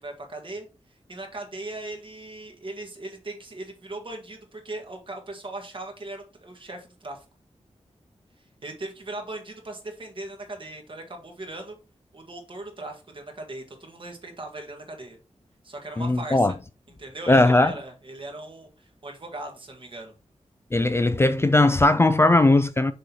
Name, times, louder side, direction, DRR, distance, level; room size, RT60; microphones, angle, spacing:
voice 1, 0.0-7.2 8.4-11.8 12.1-15.2 15.6-16.5 17.0-20.1, right 2 dB, 45° right, 1.7 m, -39 dB
voice 2, 16.0-16.5 17.3-17.7 20.7-22.9, left 2 dB, 20° left, 0.3 m, -18 dB
6.2 x 3.0 x 5.4 m
wide cardioid pair, 120°, 12 cm